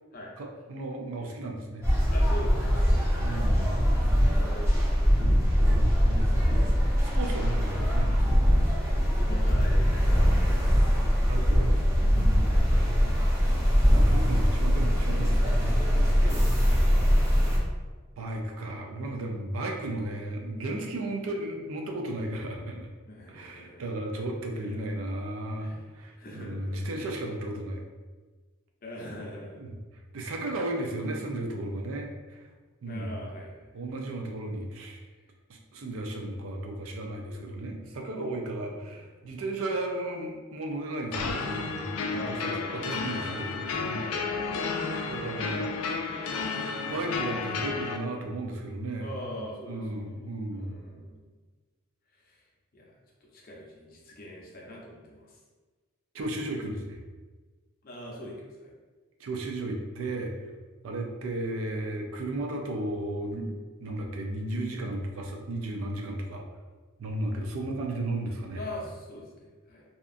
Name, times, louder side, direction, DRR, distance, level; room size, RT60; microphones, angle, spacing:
voice 1, 0.4-1.8 3.2-4.2 5.7-6.6 7.0-8.4 11.3-13.0 13.9-16.3 16.8-17.1 18.2-22.9 23.3-27.8 29.6-29.7 30.1-32.5 32.8-33.2 33.7-35.0 35.5-44.0 45.1-45.7 46.9-49.1 49.7-50.8 56.1-57.0 59.2-60.3 60.8-66.4 67.0-68.6, right 1 dB, 75° right, 2 dB, 0.4 m, -34 dB
sound 1, 1.8-17.6, equal, 15° right, 0.6 m, -22 dB
voice 2, 2.1-2.9 4.3-5.3 7.3-7.4 9.2-10.8 12.4-12.7 16.0-16.8 23.1-24.2 24.6-24.8 25.6-25.8 26.2-26.9 28.8-29.6 32.8-33.8 35.1-35.2 35.9-36.0 38.3-39.1 42.0-42.9 43.2-43.4 43.9-45.0 49.0-51.2 52.1-52.4 52.7-55.4 57.8-58.7 67.2-67.3 68.6-69.8, left 1 dB, 45° left, -3 dB, 0.5 m, -43 dB
sound 2, 41.1-48.0, left 4 dB, 90° left, 0.3 m, -32 dB
2.7 x 2.3 x 2.4 m, 1.4 s
head